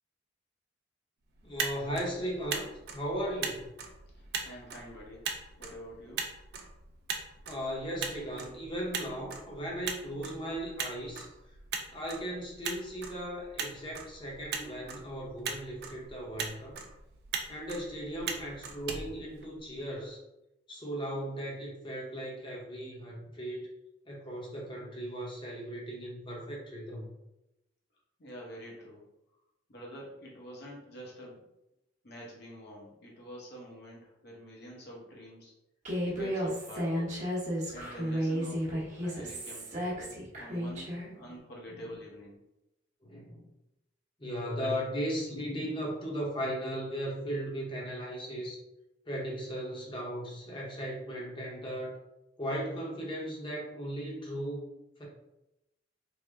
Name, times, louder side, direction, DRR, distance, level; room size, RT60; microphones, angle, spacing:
Motor vehicle (road), 1.3-19.9, right 5 dB, 55° right, 0.4 m, -40 dB
voice 1, 1.4-2.7 2.9-3.7 7.5-11.3 11.9-16.8 17.5-20.2 20.7-23.7 24.1-27.1 41.0-41.4 41.8-41.9 43.0-43.5 44.2-48.6 49.0-52.0 52.4-54.7 55.0-55.1, equal, 25° left, -3 dB, 0.8 m, -37 dB
voice 2, 4.1-5.3 5.6-6.3 28.2-29.0 29.7-31.4 32.0-35.5 36.0-37.2 37.7-42.4 44.6-44.7, equal, 60° left, -3 dB, 1.0 m, -47 dB
Human voice, 35.8-41.1, equal, 40° right, 1.0 m, -33 dB
3.6 x 2.1 x 3.4 m, 0.90 s
head